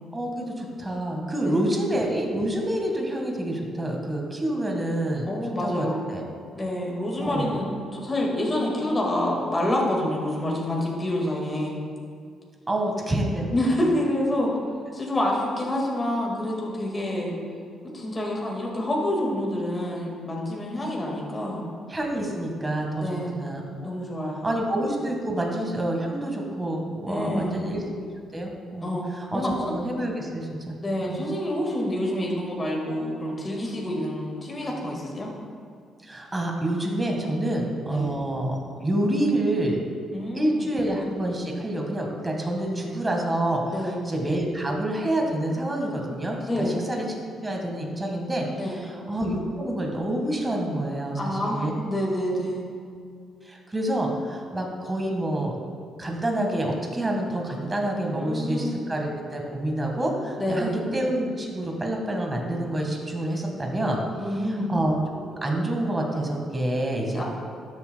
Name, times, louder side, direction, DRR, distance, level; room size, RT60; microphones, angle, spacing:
voice 1, 0.1-5.3 5.6-6.2 7.2-7.5 12.7-13.8 21.9-23.1 23.3-23.6 24.4-28.1 28.3-30.7 31.0-31.2 36.0-39.8 40.3-47.0 47.4-51.7 53.4-55.5 56.0-64.0 64.7-67.2, right 1 dB, 20° right, 1 dB, 1.6 m, -27 dB
voice 2, 1.4-1.8 5.3-6.0 6.5-11.8 13.5-14.5 14.9-17.4 17.8-21.7 23.0-23.5 23.8-24.5 27.1-27.7 28.8-29.1 29.3-29.5 30.8-35.3 37.4-37.6 37.9-38.2 40.1-40.8 43.7-44.0 46.5-46.8 48.6-48.9 51.2-52.6 58.2-58.8 60.4-60.8 64.2-64.7 67.1-67.2, left 1 dB, 25° left, -2 dB, 1.8 m, -27 dB
12.5 x 7.4 x 2.3 m, 2.2 s
cardioid pair, 90°, 0 cm